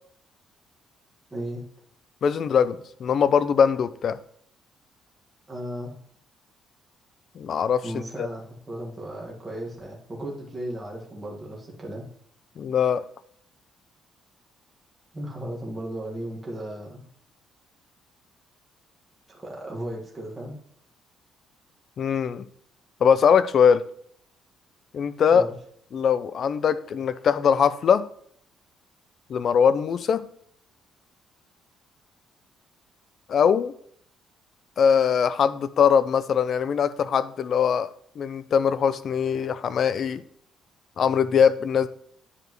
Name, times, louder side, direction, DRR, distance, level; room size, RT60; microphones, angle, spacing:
voice 1, 1.3-1.6 5.5-5.9 7.8-12.1 15.1-17.0 19.3-20.5 25.3-25.5, right 1 dB, 15° right, -3 dB, 1.7 m, -35 dB
voice 2, 2.2-4.2 7.4-7.8 8.2-8.3 12.6-13.0 22.0-22.4 23.0-23.8 24.9-25.4 25.9-28.1 29.3-30.2 33.3-33.7 34.8-37.9 38.2-40.2 41.0-41.9, left 7 dB, 40° left, 14 dB, 0.4 m, -21 dB
9.7 x 5.0 x 3.1 m, 0.64 s
cardioid pair, 170°, 0 cm